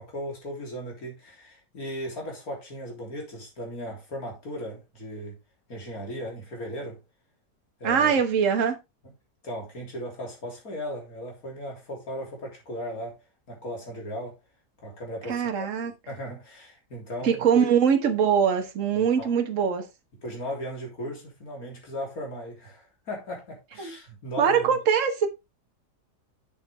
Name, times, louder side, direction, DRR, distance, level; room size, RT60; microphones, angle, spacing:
voice 1, 0.0-5.4 5.7-7.0 7.8-8.1 9.4-13.2 13.5-14.4 14.8-17.7 19.0-19.3 20.2-24.8, equal, 60° left, 3.8 m, -37 dB
voice 2, 7.8-8.8 15.3-15.9 17.2-19.9 23.8-23.9 24.4-25.3, right 7 dB, 55° right, 1.6 m, -22 dB
7.8 x 7.2 x 3.5 m
omnidirectional pair, 1.7 m